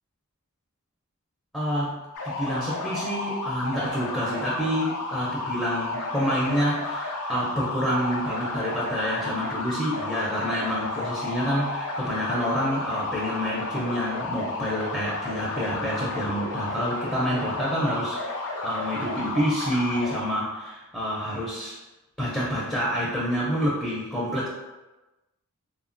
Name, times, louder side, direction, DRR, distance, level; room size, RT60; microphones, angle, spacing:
voice 1, 1.5-21.8 22.2-24.5, equal, 5° left, -7 dB, 0.4 m, -28 dB
sound 1, 2.1-20.2, left 2 dB, 90° left, 0.5 m, -32 dB
3.2 x 2.1 x 2.5 m, 1.1 s
head